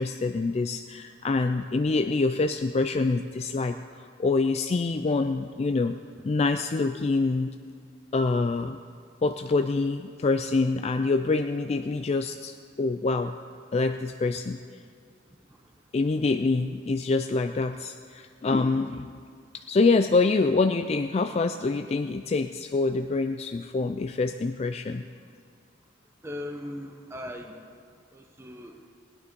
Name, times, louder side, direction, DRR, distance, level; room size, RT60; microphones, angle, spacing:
voice 1, 0.0-3.8 4.2-5.9 6.2-7.5 8.1-8.8 9.2-13.3 13.7-14.6 15.9-19.1 19.7-25.0, left 3 dB, 30° left, 7 dB, 0.3 m, -26 dB
voice 2, 26.2-27.8 28.1-28.8, left 1 dB, 15° right, 3 dB, 0.7 m, -39 dB
18.5 x 9.7 x 5.2 m, 2.2 s
head